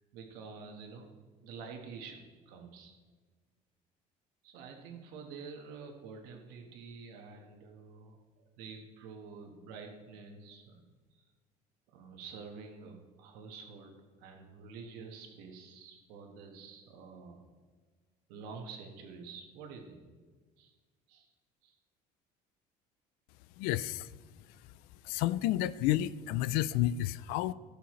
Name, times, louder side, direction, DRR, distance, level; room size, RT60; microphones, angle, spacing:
voice 1, 0.1-1.1 1.4-2.9 4.4-10.8 11.9-17.4 18.3-20.0 20.6-20.7 21.1-21.3 21.6-21.7, right 5 dB, 85° right, 3 dB, 1.5 m, -48 dB
voice 2, 23.6-24.1 25.0-27.5, left 14 dB, 80° left, 17 dB, 0.4 m, -30 dB
17.0 x 6.9 x 3.2 m, 1.4 s
cardioid pair, 155°, 15 cm